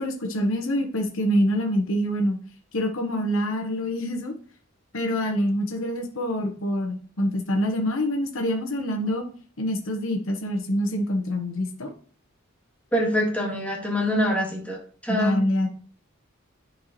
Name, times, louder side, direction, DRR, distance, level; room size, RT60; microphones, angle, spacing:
voice 1, 0.0-2.4 2.7-4.3 4.9-9.2 9.6-11.9 15.1-15.7, equal, 75° left, 2 dB, 1.1 m, -25 dB
voice 2, 12.9-14.8 15.0-15.4, equal, 5° left, -2 dB, 1.7 m, -24 dB
9.7 x 4.6 x 3.0 m, 0.42 s
head